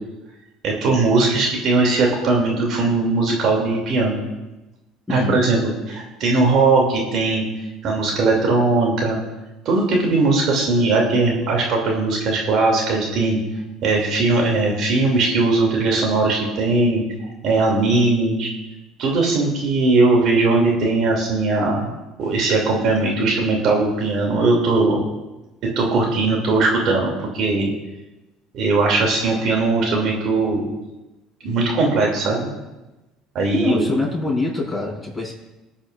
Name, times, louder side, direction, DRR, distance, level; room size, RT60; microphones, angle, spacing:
voice 1, 0.6-4.2 5.1-7.4 7.8-9.2 9.6-13.4 13.8-17.0 17.4-18.5 19.0-21.9 22.2-25.0 25.8-27.7 28.5-30.6 31.4-32.5 33.3-33.8, right 3 dB, 60° right, 0 dB, 2.8 m, -19 dB
voice 2, 5.1-5.4 33.5-35.3, left 3 dB, ahead, -4 dB, 5.2 m, -24 dB
25.5 x 8.7 x 2.5 m, 1.1 s
supercardioid pair, 80°, 0 cm